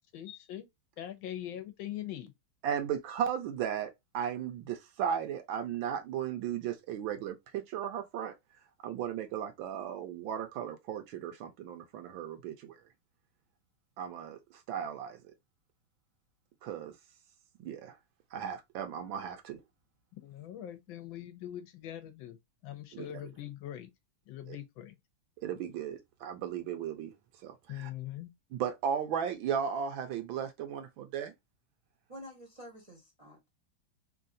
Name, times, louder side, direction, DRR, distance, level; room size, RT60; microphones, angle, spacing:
voice 1, 0.1-0.7 1.0-2.3 20.1-22.4 22.6-23.9 24.3-25.0 27.7-28.3, left 12 dB, 75° left, 1.3 m, -42 dB
voice 2, 2.6-8.3 8.8-12.8 14.0-14.4 14.7-15.2 16.6-16.9 17.6-18.0 18.3-19.6 22.9-23.1 24.5-24.6 25.4-27.1 27.4-27.9 28.5-31.3, right 8 dB, 75° right, 1.4 m, -35 dB
voice 3, 32.1-33.5, equal, 30° right, 0.6 m, -49 dB
3.7 x 2.3 x 2.6 m
omnidirectional pair, 2.3 m